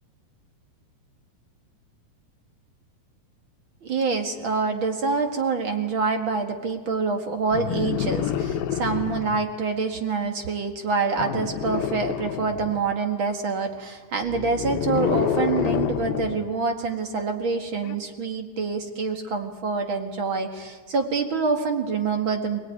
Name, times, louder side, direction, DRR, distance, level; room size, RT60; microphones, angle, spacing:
voice 1, 3.8-22.6, right 4 dB, 45° right, 5 dB, 1.9 m, -26 dB
sound 1, 7.5-9.5 11.2-12.9 14.2-16.5 17.8-18.0, left 9 dB, 80° left, 2.7 m, -28 dB
25.5 x 18.0 x 9.6 m, 1.4 s
omnidirectional pair, 4.3 m